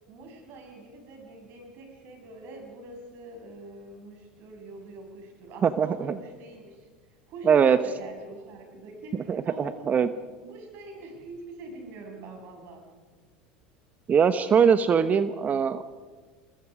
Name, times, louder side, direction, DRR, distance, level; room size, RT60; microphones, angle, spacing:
voice 1, 0.0-9.9 10.3-12.8, right 2 dB, 55° right, 2 dB, 6.9 m, -44 dB
voice 2, 7.5-7.8 9.3-10.1 14.1-15.8, right 7 dB, 35° right, 12 dB, 1.0 m, -21 dB
27.5 x 21.0 x 5.0 m, 1.4 s
hypercardioid pair, 80°, 5 cm